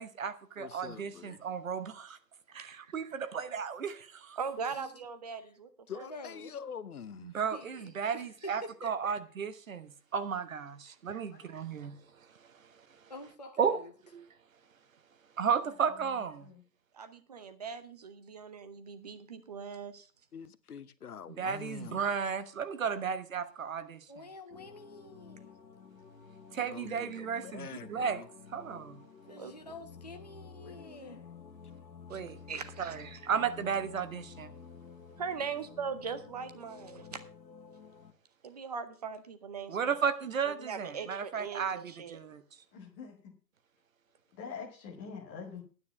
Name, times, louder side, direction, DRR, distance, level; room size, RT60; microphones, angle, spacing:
voice 1, 0.0-2.2 2.5-4.4 7.2-11.9 13.6-13.8 15.4-16.5 21.4-24.2 26.5-28.2 28.5-29.0 32.1-32.4 32.8-34.5 39.7-42.4, right 6 dB, 50° right, 1.2 m, -34 dB
voice 2, 0.6-1.4 3.4-3.5 5.9-7.3 20.3-22.0 26.5-28.3, left 7 dB, 60° left, 1.0 m, -45 dB
voice 3, 2.6-3.1 4.4-5.7 5.9-6.1 10.9-11.0 16.9-20.1 29.3-29.5 32.1-32.2 32.5-33.0 35.2-37.2 38.4-39.9 40.4-42.2, right 6 dB, 25° right, 0.8 m, -40 dB
voice 4, 4.5-5.0 11.3-12.1 13.4-13.5 15.4-16.6 30.6-31.3 42.7-43.4 44.3-45.6, left 6 dB, 5° left, 0.8 m, -48 dB
voice 5, 6.0-6.5 7.5-9.1 13.1-13.9 24.1-25.5 29.3-31.2, left 1 dB, 25° left, 0.4 m, -47 dB
sound 1, 24.5-38.1, left 6 dB, 85° left, 1.5 m, -52 dB
9.7 x 9.6 x 5.6 m
figure-of-eight pair, 150°, 50 cm